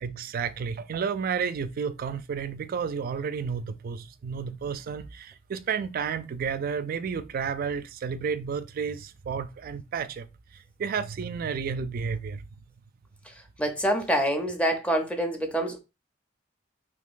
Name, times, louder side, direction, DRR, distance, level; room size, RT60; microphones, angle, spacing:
voice 1, 0.0-10.3 10.8-12.5, right 6 dB, 50° right, 0.3 m, -31 dB
voice 2, 13.6-15.8, equal, 5° left, 0.6 m, -26 dB
3.7 x 2.8 x 2.5 m
head